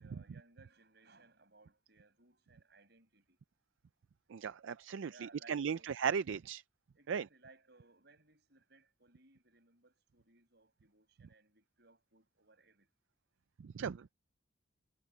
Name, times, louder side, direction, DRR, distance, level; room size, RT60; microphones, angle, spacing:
voice 1, 0.0-3.4 5.1-5.9 6.9-12.9, right 3 dB, 55° right, 7.9 m, -63 dB
voice 2, 4.3-6.6 7.1-7.2 13.6-14.1, right 7 dB, 80° right, 0.4 m, -37 dB
head